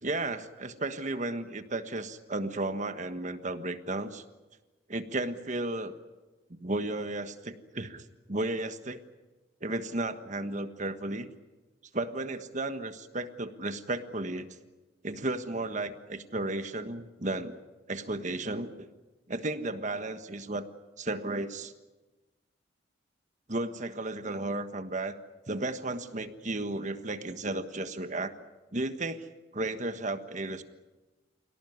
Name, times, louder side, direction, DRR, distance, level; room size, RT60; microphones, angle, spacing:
voice 1, 0.0-4.2 4.9-5.9 6.6-9.0 9.6-11.3 11.9-14.5 15.0-17.5 17.9-18.9 19.3-20.7 21.0-21.7 23.5-25.2 25.5-28.3 28.7-29.3 29.5-30.6, right 2 dB, 40° right, 9 dB, 1.5 m, -34 dB
27.5 x 18.0 x 9.6 m, 1.2 s
head